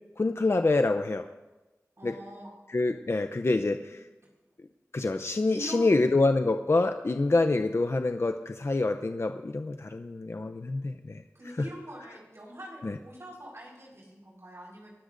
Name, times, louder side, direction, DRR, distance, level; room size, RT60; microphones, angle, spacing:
voice 1, 0.2-1.2 2.0-2.1 2.7-4.0 4.9-11.2 11.6-11.7 12.8-12.9, left 2 dB, 50° left, 7 dB, 0.6 m, -26 dB
voice 2, 2.0-2.5 3.8-3.9 5.5-5.9 11.3-14.9, equal, 55° right, -4 dB, 4.6 m, -43 dB
25.5 x 13.0 x 2.6 m, 1.1 s
wide cardioid pair, 60°, 6 cm